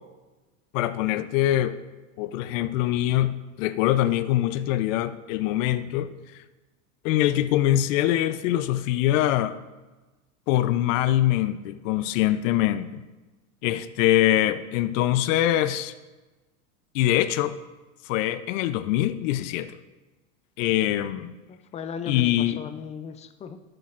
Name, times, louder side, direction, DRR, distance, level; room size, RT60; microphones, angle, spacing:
voice 1, 0.7-1.8 2.2-6.1 7.0-9.6 10.5-13.0 13.6-15.9 16.9-17.6 18.0-19.8 20.6-21.3 22.1-22.6, left 13 dB, 65° left, 13 dB, 0.6 m, -23 dB
voice 2, 21.5-23.6, left 6 dB, 15° left, 10 dB, 0.4 m, -37 dB
13.0 x 7.9 x 2.5 m, 1.2 s
supercardioid pair, 115°, 42 cm